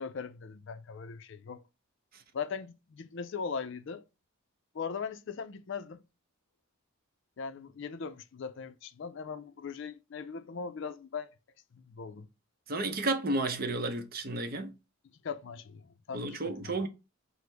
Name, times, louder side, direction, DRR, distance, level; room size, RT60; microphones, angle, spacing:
voice 1, 0.0-1.6 2.3-4.0 4.7-6.0 7.4-11.3 11.7-12.3 15.2-16.8, left 5 dB, 55° left, 0.4 m, -39 dB
voice 2, 12.7-14.7 16.1-16.9, right 2 dB, 45° right, 0.6 m, -32 dB
5.9 x 2.1 x 3.3 m
head